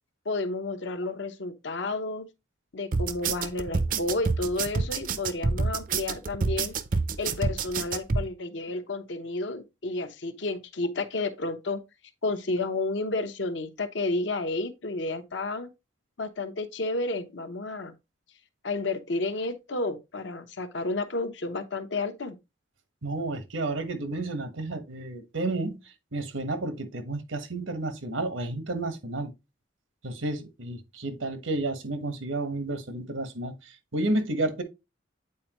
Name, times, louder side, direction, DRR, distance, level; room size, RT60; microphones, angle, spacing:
voice 1, 0.2-2.3 2.7-6.7 7.2-11.8 12.2-15.7 16.2-17.9 18.6-22.4, left 2 dB, 70° left, 0.8 m, -31 dB
sound 1, 2.9-8.2, right 4 dB, 45° right, 0.5 m, -27 dB
voice 2, 23.0-25.8 26.1-29.3 30.0-33.5 33.9-34.6, right 2 dB, 90° right, 1.2 m, -31 dB
8.4 x 4.4 x 2.9 m
head